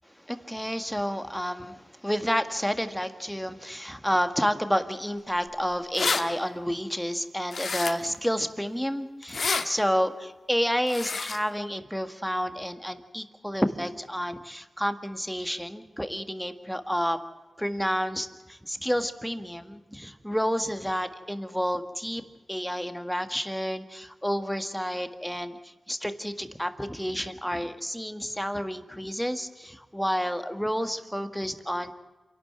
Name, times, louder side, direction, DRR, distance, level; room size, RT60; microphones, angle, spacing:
voice 1, 0.3-17.2 17.6-22.2 22.5-31.9, equal, ahead, 8 dB, 1.9 m, -30 dB
sound 1, 5.5-5.6 5.7-6.2 7.5-8.2 9.2-9.6 10.9-11.4, left 4 dB, 75° left, 1.6 m, -28 dB
27.5 x 12.0 x 9.0 m, 1.2 s
cardioid pair, 65°, 0 cm